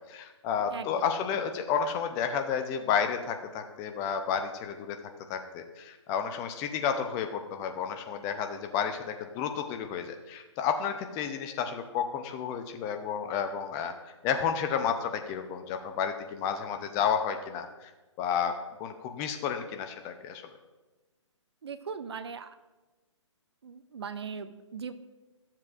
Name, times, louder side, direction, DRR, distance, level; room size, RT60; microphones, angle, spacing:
voice 1, 0.1-5.0 5.3-13.9 14.2-17.9 18.2-20.4, left 7 dB, 20° left, 6 dB, 0.6 m, -31 dB
voice 2, 0.7-1.1 1.3-1.4 21.6-22.6 23.6-24.9, right 6 dB, 55° right, 12 dB, 0.6 m, -39 dB
14.0 x 7.4 x 2.5 m, 1.2 s
figure-of-eight pair, 130°, 16 cm